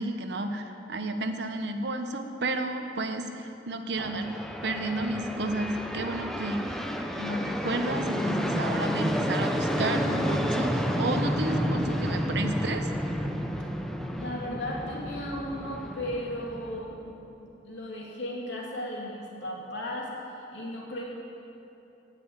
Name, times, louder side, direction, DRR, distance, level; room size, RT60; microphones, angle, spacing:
voice 1, 0.0-6.8 7.2-12.9, right 2 dB, 65° right, 6 dB, 1.0 m, -32 dB
sound 1, 4.0-16.8, equal, ahead, 0.7 m, -30 dB
voice 2, 14.2-17.1 17.6-20.1 20.5-21.0, left 1 dB, 80° left, -3 dB, 2.8 m, -35 dB
16.5 x 5.9 x 9.0 m, 2.9 s
head